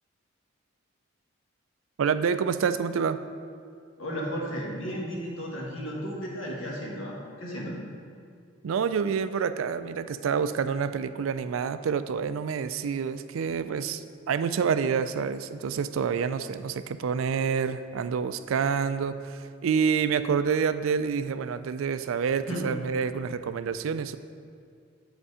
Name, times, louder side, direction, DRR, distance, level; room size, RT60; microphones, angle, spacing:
voice 1, 2.0-3.2 8.6-24.2, right 6 dB, 80° right, 12 dB, 0.4 m, -28 dB
voice 2, 4.0-7.8 22.5-22.7, equal, 85° left, -3 dB, 1.7 m, -34 dB
8.1 x 5.2 x 4.9 m, 2.4 s
head